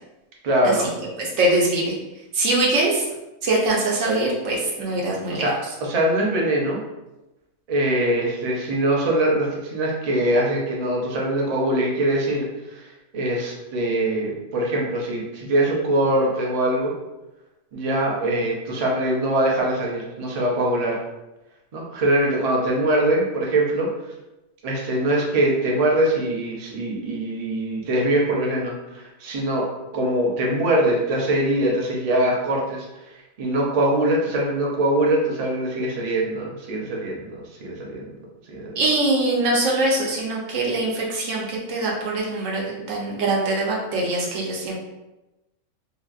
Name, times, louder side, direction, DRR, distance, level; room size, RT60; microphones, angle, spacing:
voice 1, 0.4-0.9 5.3-5.5 5.8-6.8 7.7-16.9 17.7-21.0 21.7-23.9 24.6-29.6 29.9-32.9 33.4-38.0 38.5-38.7, right 1 dB, 55° right, -2 dB, 0.4 m, -22 dB
voice 2, 1.2-1.9 2.3-3.0 3.4-5.5 38.8-44.8, right 2 dB, 75° right, -2 dB, 1.0 m, -23 dB
2.8 x 2.6 x 2.3 m, 1.0 s
omnidirectional pair, 1.4 m